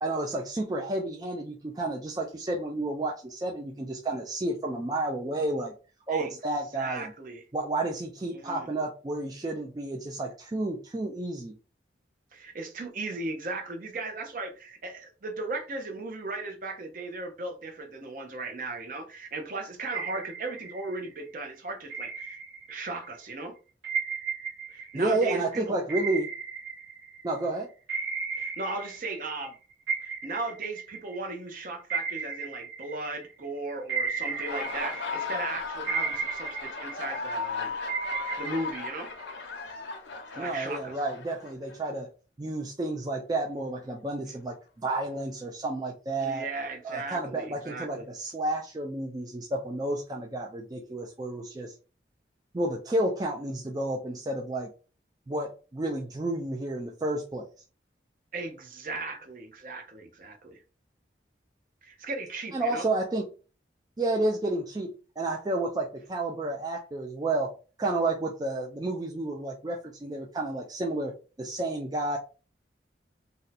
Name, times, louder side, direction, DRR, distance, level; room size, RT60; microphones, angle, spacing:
voice 1, 0.0-5.7 6.1-7.1 7.5-11.6 24.9-26.3 27.2-27.7 40.4-42.1 42.4-46.5 46.8-51.7 52.5-54.7 55.3-57.5 62.5-63.3 64.0-67.5 67.8-71.1 71.4-72.2, right 2 dB, 20° right, 0.3 m, -31 dB
voice 2, 6.7-7.4 8.3-8.7 12.3-22.4 22.7-23.6 24.7-25.7 28.4-29.5 30.0-37.7 38.2-39.1 40.3-40.9 46.2-48.0 58.3-60.6 61.8-62.9, right 2 dB, 45° right, 0.6 m, -37 dB
sound 1, 19.9-21.2 21.9-23.1 23.8-27.5 27.9-29.5 29.9-33.4 33.9-35.5 35.9-37.5 37.9-39.6, right 5 dB, 80° right, 0.9 m, -35 dB
Laughter, 34.2-41.8, left 4 dB, 80° left, 0.7 m, -36 dB
2.6 x 2.1 x 4.0 m
head